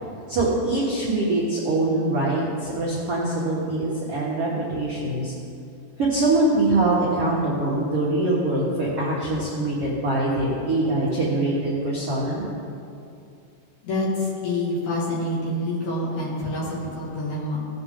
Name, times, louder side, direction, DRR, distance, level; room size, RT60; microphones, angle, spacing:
voice 1, 0.3-5.3 6.0-12.4, right 2 dB, 65° right, -6 dB, 1.5 m, -23 dB
voice 2, 13.8-17.6, left 1 dB, 55° left, -6 dB, 3.0 m, -27 dB
17.0 x 7.7 x 3.8 m, 2.5 s
omnidirectional pair, 4.9 m